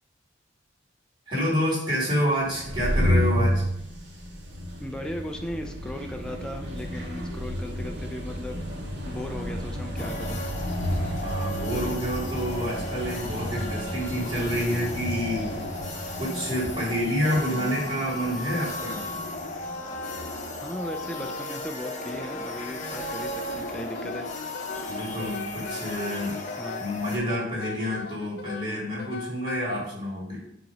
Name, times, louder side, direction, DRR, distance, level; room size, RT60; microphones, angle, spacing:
voice 1, 1.3-3.6 11.2-15.5 16.2-19.1 24.9-26.4 26.8-30.4, equal, 25° right, -5 dB, 2.5 m, -28 dB
sound 1, 2.4-19.8, equal, 65° right, 1.3 m, -31 dB
voice 2, 4.8-8.6 9.0-10.4 20.6-24.3 26.6-26.8, left 1 dB, 5° left, 3 dB, 0.4 m, -37 dB
sound 2, 10.0-27.2, left 1 dB, 40° left, 0.9 m, -35 dB
Wind instrument woodwind instrument, 23.9-29.6, left 4 dB, 60° left, 0.5 m, -39 dB
7.5 x 3.0 x 5.2 m, 0.74 s
head